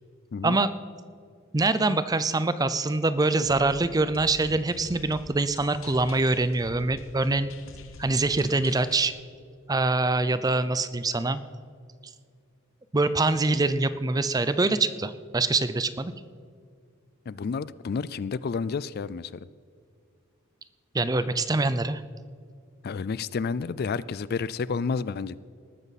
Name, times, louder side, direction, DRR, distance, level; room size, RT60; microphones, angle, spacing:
voice 1, 1.5-7.5 8.0-9.1 9.7-11.4 12.9-16.1 20.9-22.0, right 2 dB, 20° right, 13 dB, 0.5 m, -24 dB
sound 1, 3.4-9.1, left 2 dB, 75° left, 1.2 m, -46 dB
voice 2, 17.3-19.4 22.8-25.4, left 5 dB, 50° left, 18 dB, 0.3 m, -30 dB
19.5 x 13.5 x 4.2 m, 2.2 s
head